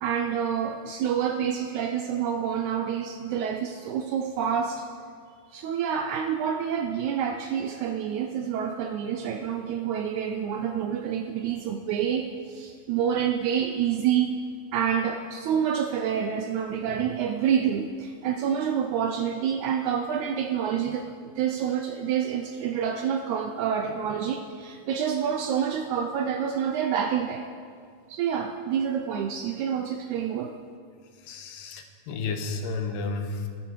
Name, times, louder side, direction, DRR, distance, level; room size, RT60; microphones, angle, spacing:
voice 1, 0.0-4.9 5.5-14.3 14.7-27.5 28.1-30.6, right 8 dB, 80° right, 6 dB, 1.7 m, -28 dB
voice 2, 31.2-33.5, left 4 dB, 85° left, 5 dB, 2.7 m, -32 dB
13.5 x 12.5 x 4.7 m, 2.1 s
omnidirectional pair, 3.9 m